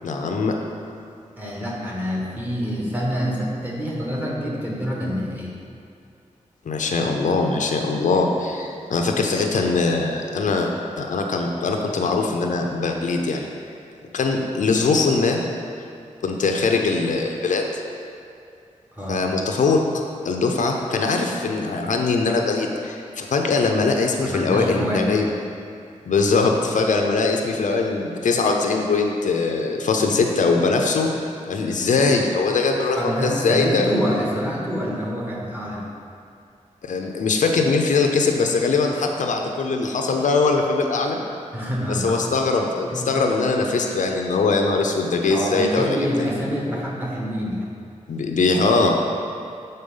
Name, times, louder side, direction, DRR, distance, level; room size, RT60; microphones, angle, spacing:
voice 1, 0.0-0.6 6.7-10.7 11.0-13.5 14.1-15.4 16.2-17.7 19.1-19.8 20.2-25.3 26.1-31.1 31.5-33.9 36.8-41.2 41.9-46.0 48.1-49.1, left 4 dB, 80° left, 2 dB, 0.6 m, -21 dB
voice 2, 1.4-5.6 18.9-19.2 24.2-25.3 32.9-35.8 41.5-42.2 42.9-43.1 45.3-47.7, equal, 15° right, -4 dB, 1.1 m, -26 dB
6.6 x 4.1 x 5.4 m, 2.4 s
wide cardioid pair, 155°, 13 cm